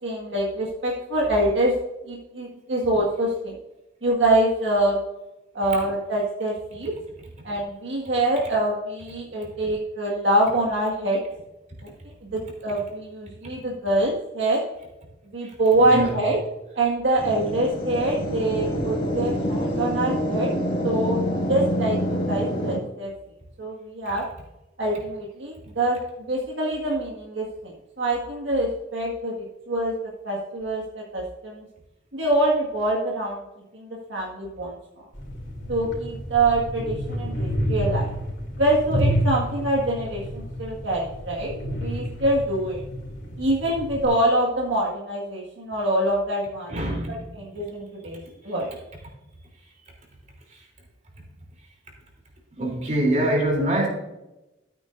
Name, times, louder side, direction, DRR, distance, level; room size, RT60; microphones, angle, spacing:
voice 1, 0.0-1.7 2.1-3.6 4.0-5.0 5.5-6.9 7.4-11.2 12.2-14.6 15.3-16.4 16.8-20.5 20.8-21.2 21.5-23.1 23.6-24.2 24.8-29.9 30.2-31.6 32.1-33.4 33.7-34.8 35.7-38.1 38.6-42.8 43.4-46.7 47.1-48.7, right 1 dB, 70° right, 1.9 m, -25 dB
voice 2, 15.8-16.2 46.7-47.2 52.6-53.9, right 1 dB, 40° right, 3.2 m, -24 dB
sound 1, 17.2-22.8, equal, 50° left, 2.3 m, -26 dB
sound 2, 35.1-44.1, equal, 65° left, 3.2 m, -29 dB
13.0 x 8.8 x 2.6 m
head